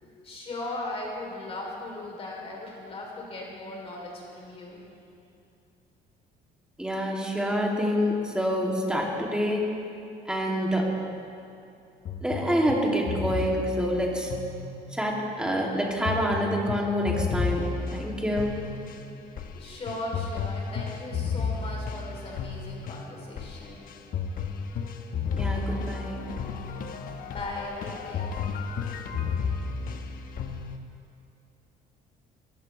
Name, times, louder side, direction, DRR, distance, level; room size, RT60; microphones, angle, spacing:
voice 1, 0.0-4.9 19.5-24.8 27.2-28.5, left 2 dB, 35° left, -2 dB, 3.5 m, -38 dB
voice 2, 6.8-9.6 10.3-10.9 12.2-14.3 14.9-18.5 25.3-26.2, equal, 5° right, -3 dB, 2.8 m, -27 dB
sound 1, 12.1-15.2 16.0-30.8, left 5 dB, 55° left, 1.2 m, -33 dB
21.5 x 15.0 x 3.4 m, 2.5 s
cardioid pair, 110°, 17 cm